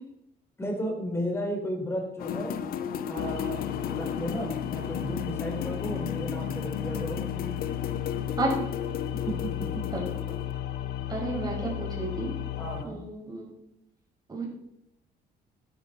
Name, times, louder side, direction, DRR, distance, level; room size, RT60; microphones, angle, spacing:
voice 1, 0.6-2.5 3.1-7.5 9.1-9.9 12.6-13.0, equal, 15° left, 1 dB, 4.6 m, -34 dB
sound 1, 2.2-10.5, left 8 dB, 60° left, 0.9 m, -35 dB
sound 2, 3.2-12.8, left 12 dB, 85° left, 0.9 m, -35 dB
voice 2, 11.1-12.3 12.8-13.5 14.3-14.5, right 2 dB, 25° right, -2 dB, 6.3 m, -31 dB
12.0 x 12.0 x 4.7 m, 0.79 s
cardioid pair, 110°, 17 cm